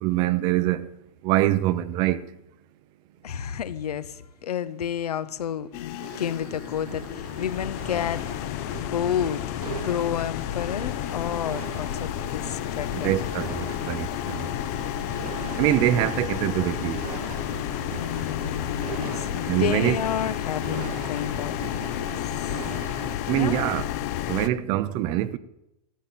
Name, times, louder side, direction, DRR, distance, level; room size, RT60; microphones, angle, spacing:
voice 1, 0.0-0.9 1.2-2.2 12.9-14.5 15.6-17.0 19.5-20.0 23.3-23.8 24.3-25.4, right 14 dB, 20° right, 0.5 m, -24 dB
voice 2, 3.2-9.4 9.7-13.4 18.0-21.6 21.9-22.6 23.4-23.6, left 9 dB, 90° left, 1.1 m, -31 dB
sound 1, 5.7-24.5, left 13 dB, 25° left, 0.5 m, -31 dB
sound 2, 6.0-23.1, right 9 dB, 70° right, 1.0 m, -40 dB
13.5 x 8.8 x 9.0 m
hypercardioid pair, 165°, 19 cm